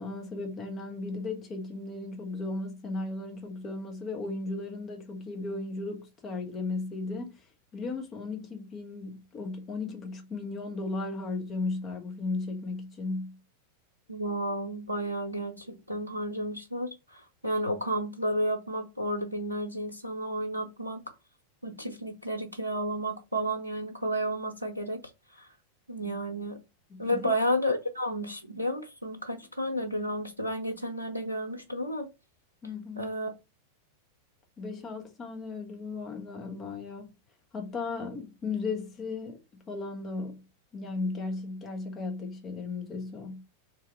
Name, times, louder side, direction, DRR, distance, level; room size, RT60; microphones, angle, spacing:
voice 1, 0.0-7.4 7.7-13.4 26.0-26.2 26.9-27.4 32.6-33.1 34.6-37.1 37.5-40.4 40.7-43.4, left 3 dB, 25° left, 1.3 m, -36 dB
voice 2, 14.1-21.0 21.6-25.0 25.4-25.5 25.9-26.6 27.0-32.1 33.0-33.3, equal, 85° right, 0.8 m, -32 dB
3.4 x 3.3 x 4.5 m
figure-of-eight pair, 90°, 0 cm